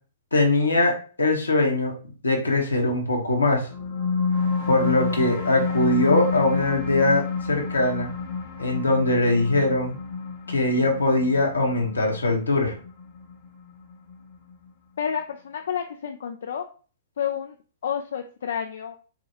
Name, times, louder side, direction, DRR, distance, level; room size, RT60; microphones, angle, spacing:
voice 1, 0.3-1.9 2.2-3.7 4.7-8.1 8.6-10.0 10.5-12.7, left 2 dB, 85° left, 1 dB, 1.1 m, -22 dB
sound 1, 3.6-14.5, left 5 dB, 50° left, 0.9 m, -29 dB
voice 2, 15.0-16.7 17.2-17.6 17.8-19.0, left 8 dB, 65° left, 6 dB, 0.3 m, -30 dB
4.8 x 2.3 x 2.9 m, 0.39 s
figure-of-eight pair, 115°, 0 cm